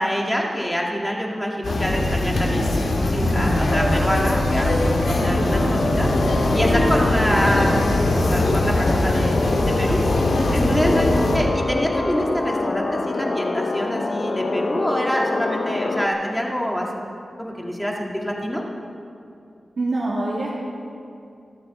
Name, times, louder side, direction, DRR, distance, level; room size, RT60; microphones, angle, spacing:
voice 1, 0.0-5.6 6.0-7.8 8.3-9.4 9.6-10.0 10.5-16.9 17.4-18.6, equal, 5° left, -1 dB, 2.0 m, -25 dB
sound 1, 1.6-11.4, left 1 dB, 80° left, 2.5 m, -21 dB
sound 2, 3.7-16.1, left 3 dB, 50° left, 0.8 m, -26 dB
voice 2, 5.3-5.7 19.8-20.6, right 2 dB, 55° right, -8 dB, 2.8 m, -26 dB
25.5 x 12.5 x 4.2 m, 2.5 s
wide cardioid pair, 175°, 0 cm